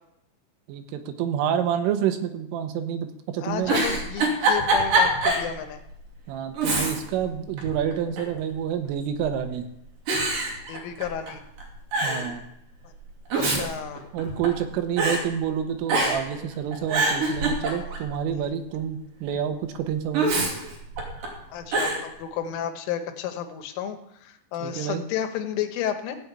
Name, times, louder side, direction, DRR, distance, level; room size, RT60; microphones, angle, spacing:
voice 1, 0.7-3.7 6.3-9.7 12.0-12.4 13.5-13.7 14.1-20.4 24.6-25.1, right 9 dB, 85° right, 7 dB, 3.8 m, -28 dB
voice 2, 3.4-5.8 10.7-11.4 12.8-12.9 13.4-14.0 17.8-17.9 18.4-18.5 21.5-26.2, left 9 dB, 80° left, 6 dB, 3.7 m, -32 dB
Giggle, 3.5-5.5 5.9-6.0 6.6-7.2 7.6-8.4 9.1-9.5 10.1-11.3 11.6-11.7 11.9-12.3 13.1-14.6 15.0-15.2 15.9-16.3 16.7-18.1 20.1-21.3 21.7-22.0, right 2 dB, 50° right, 4.0 m, -24 dB
17.0 x 6.1 x 8.3 m, 0.79 s
omnidirectional pair, 5.6 m